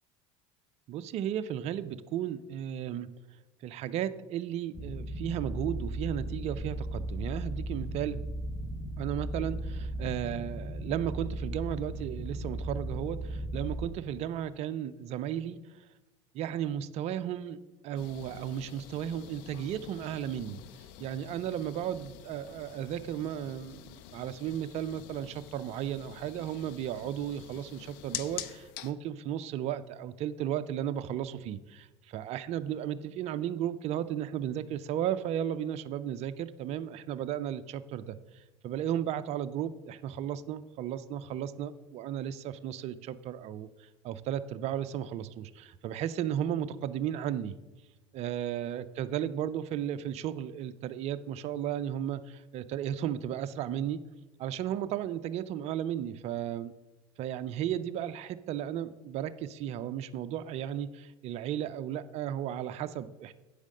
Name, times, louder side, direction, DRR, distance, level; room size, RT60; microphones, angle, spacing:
voice 1, 0.9-3.1 3.6-8.2 9.0-15.9 16.3-20.6 21.0-47.6 48.1-54.0 54.4-56.7 57.2-63.3, right 10 dB, 45° right, 12 dB, 0.4 m, -34 dB
sound 1, 4.7-13.9, right 1 dB, 10° left, 1.1 m, -36 dB
sound 2, 18.0-28.9, left 12 dB, 65° left, 0.6 m, -46 dB
8.3 x 5.0 x 6.4 m, 1.1 s
supercardioid pair, 95°, 15 cm